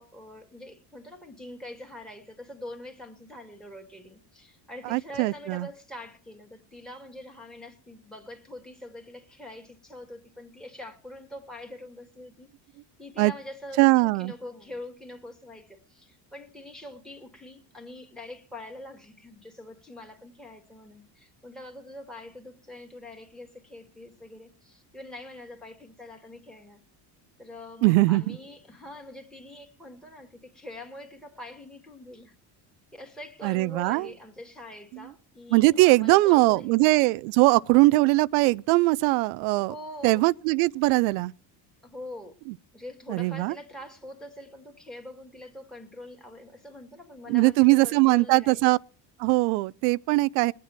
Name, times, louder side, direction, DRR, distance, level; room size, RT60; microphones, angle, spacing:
voice 1, 0.0-12.5 13.0-26.8 27.4-32.3 33.0-36.8 39.7-40.2 41.8-42.4 42.7-48.7, left 1 dB, ahead, 2.2 m, -44 dB
voice 2, 4.8-5.7 13.2-13.3 13.8-14.3 27.8-28.4 33.4-34.1 35.5-39.7 40.0-41.3 43.1-43.5 47.3-48.8 49.2-50.5, right 22 dB, 80° right, 0.6 m, -21 dB
21.0 x 7.6 x 4.3 m
supercardioid pair, 90°, 49 cm